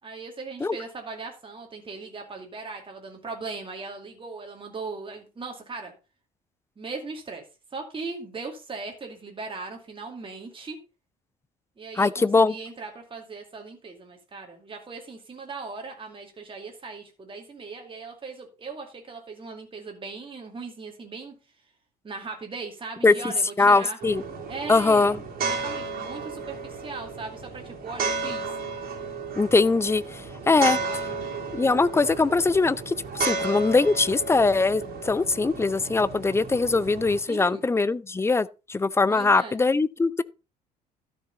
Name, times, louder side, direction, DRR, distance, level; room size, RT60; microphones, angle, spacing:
voice 1, 0.0-5.9 6.8-7.4 7.7-10.8 11.8-21.3 22.0-24.0 24.5-28.5 30.4-31.2 37.3-37.7 39.1-39.6, right 4 dB, 25° right, 2.4 m, -39 dB
voice 2, 12.0-12.5 23.0-23.1 23.6-24.2 24.7-25.2 29.4-30.8 31.5-40.2, left 3 dB, 10° left, 0.5 m, -22 dB
sound 1, 24.0-37.2, right 4 dB, 45° right, 3.0 m, -33 dB
12.5 x 6.5 x 4.0 m
figure-of-eight pair, 55°, 21 cm